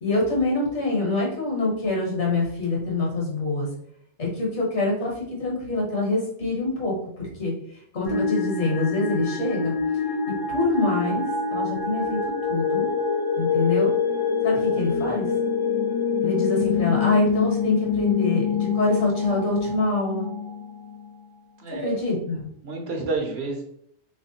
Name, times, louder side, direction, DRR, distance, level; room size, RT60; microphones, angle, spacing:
voice 1, 0.0-3.7 4.2-9.7 10.5-11.3 11.5-12.9 13.4-13.9 14.4-15.3 16.2-20.3 21.8-22.4, left 2 dB, 65° left, -2 dB, 1.4 m, -25 dB
sound 1, 8.0-21.1, left 6 dB, 90° left, 1.4 m, -25 dB
voice 2, 21.6-22.1 22.6-23.6, right 3 dB, 60° right, 1 dB, 0.8 m, -29 dB
3.4 x 3.2 x 2.7 m, 0.68 s
omnidirectional pair, 1.3 m